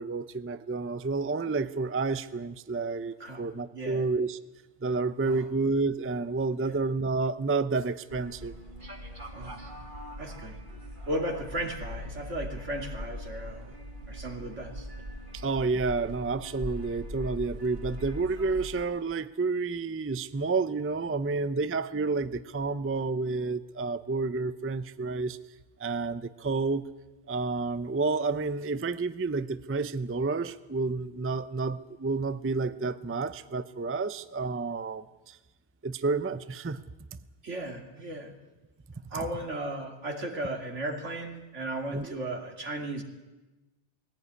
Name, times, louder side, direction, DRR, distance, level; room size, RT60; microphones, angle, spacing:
voice 1, 0.0-4.4 4.8-8.5 15.3-25.4 25.8-26.8 27.3-35.4 35.8-36.8 41.9-42.1, right 3 dB, 15° right, 13 dB, 0.4 m, -30 dB
voice 2, 3.7-4.0 5.2-5.5 6.6-6.8 9.3-9.6 10.2-10.6 11.1-13.8 14.1-14.9 37.4-38.4 39.1-43.0, right 1 dB, 80° right, 3 dB, 2.9 m, -35 dB
sound 1, 8.1-18.8, equal, 45° right, 2.4 m, -41 dB
21.0 x 16.5 x 9.6 m, 1.1 s
omnidirectional pair, 1.2 m